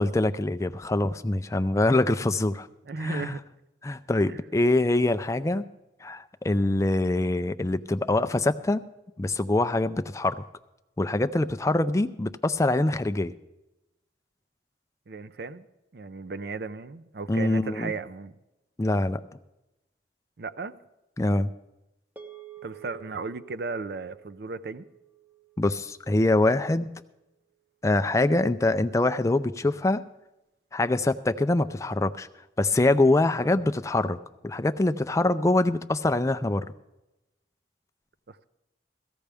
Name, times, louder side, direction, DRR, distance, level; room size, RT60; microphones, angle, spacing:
voice 1, 0.0-2.7 3.0-3.4 3.8-5.6 6.0-8.8 9.2-10.4 11.0-13.3 17.3-17.9 18.8-19.2 21.2-21.5 25.6-26.9 27.8-30.0 30.7-32.3 32.6-34.2 34.4-36.7, left 2 dB, 15° left, 10 dB, 0.4 m, -24 dB
voice 2, 2.9-3.4 4.3-4.4 15.1-15.7 15.9-18.3 20.4-20.7 22.6-24.8 33.4-33.6 38.3-38.4, right 4 dB, 60° right, 13 dB, 0.5 m, -35 dB
sound 1, 22.2-26.7, right 10 dB, 10° right, 0.8 m, -50 dB
17.0 x 15.0 x 3.4 m, 0.96 s
head